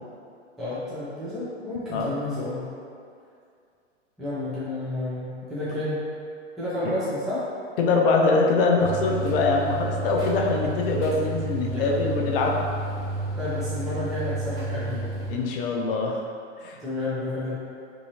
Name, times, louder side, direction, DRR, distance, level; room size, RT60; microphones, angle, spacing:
voice 1, 0.6-2.6 4.2-6.0 6.6-7.5 11.7-12.0 13.4-15.1 16.8-17.5, left 1 dB, ahead, -12 dB, 0.5 m, -30 dB
voice 2, 7.8-12.6 15.3-16.2 16.6-16.8, left 3 dB, 50° left, 0 dB, 0.5 m, -23 dB
sound 1, 8.8-15.3, right 2 dB, 15° right, 1.1 m, -31 dB
2.7 x 2.7 x 2.7 m, 2.3 s
hypercardioid pair, 110°, 36 cm